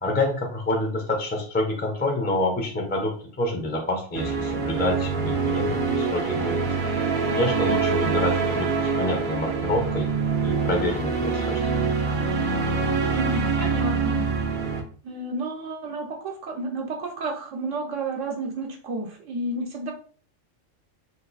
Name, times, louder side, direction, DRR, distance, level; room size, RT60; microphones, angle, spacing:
voice 1, 0.0-6.7 7.3-10.1 10.4-12.0, left 2 dB, 10° left, 1 dB, 0.5 m, -27 dB
sound 1, 4.2-14.8, right 5 dB, 55° right, 0.6 m, -25 dB
voice 2, 13.1-14.3 15.0-19.9, right 2 dB, 75° right, 1 dB, 1.0 m, -31 dB
2.9 x 2.5 x 4.0 m, 0.43 s
omnidirectional pair, 1.3 m